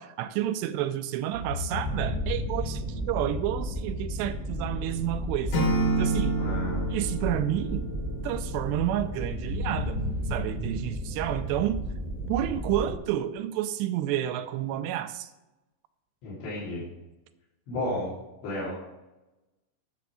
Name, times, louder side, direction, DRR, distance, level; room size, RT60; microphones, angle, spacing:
voice 1, 0.0-5.6 6.0-6.4 6.9-7.9 8.2-10.0 10.3-11.8 12.3-15.3, right 12 dB, 85° right, 10 dB, 2.6 m, -30 dB
sound 1, 1.3-4.3 9.3-12.5, left 1 dB, 60° right, 1.7 m, -36 dB
sound 2, 1.8-13.0, equal, 15° right, 1.0 m, -34 dB
Acoustic guitar / Strum, 5.5-8.6, right 2 dB, 55° left, 3.0 m, -28 dB
voice 2, 6.4-6.8 16.2-16.8 17.7-18.1 18.4-18.7, left 1 dB, 80° left, -9 dB, 5.1 m, -32 dB
10.5 x 7.0 x 4.8 m, 1.0 s
omnidirectional pair, 5.1 m